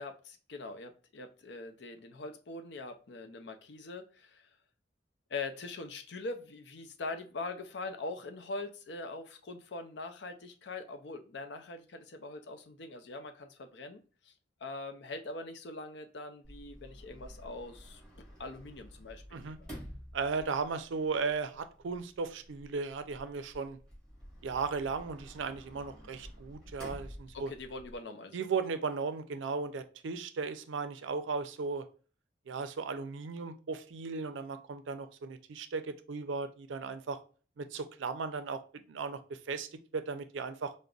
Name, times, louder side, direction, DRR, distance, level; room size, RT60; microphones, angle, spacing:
voice 1, 0.0-4.5 5.3-14.3 14.6-18.0 18.4-19.7 27.3-28.5, left 3 dB, 65° left, 0.5 m, -42 dB
Sliding door, 16.4-28.0, equal, 5° left, 1.5 m, -51 dB
voice 2, 20.1-23.8 24.4-27.5 28.3-31.9 32.5-37.2 37.6-38.6 38.9-40.7, right 4 dB, 85° right, 0.4 m, -36 dB
5.1 x 2.1 x 2.3 m
head